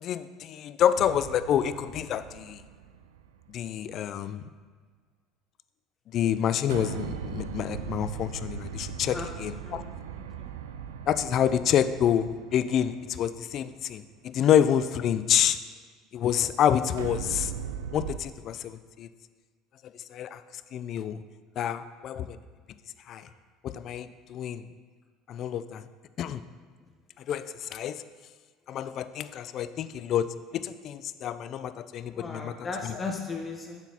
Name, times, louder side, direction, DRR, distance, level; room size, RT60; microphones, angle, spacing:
voice 1, 0.0-2.6 3.5-4.4 6.1-9.8 11.1-15.6 16.1-17.5 17.9-19.1 20.1-20.4 20.7-21.2 21.6-22.4 23.1-23.3 23.6-24.6 25.3-25.8 26.2-26.4 27.3-28.0 28.7-30.3 30.5-32.5 32.8-33.0, left 9 dB, 55° left, 13 dB, 0.3 m, -28 dB
sound 1, 1.0-3.5 6.7-13.9 17.0-18.2, right 7 dB, 90° right, 0.3 m, -39 dB
voice 2, 9.6-10.5 32.1-33.8, left 4 dB, 30° left, 1 dB, 0.7 m, -37 dB
6.9 x 6.0 x 2.8 m, 1.5 s
hypercardioid pair, 80°, 0 cm